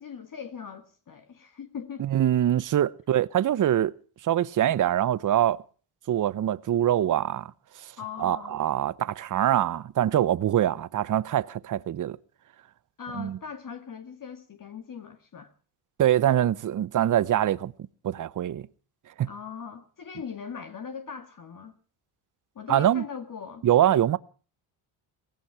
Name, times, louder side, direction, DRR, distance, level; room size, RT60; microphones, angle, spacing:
voice 1, 0.0-2.1 8.0-8.6 13.0-15.5 19.2-21.8 22.6-23.7, left 7 dB, 40° left, 2.1 m, -40 dB
voice 2, 2.0-3.9 4.2-5.6 6.1-7.5 8.2-12.2 13.2-13.4 16.0-17.7 18.0-18.6 19.2-19.3 22.7-23.0 23.6-24.2, right 11 dB, 40° right, 0.8 m, -24 dB
18.0 x 16.5 x 4.7 m
cardioid pair, 90°, 49 cm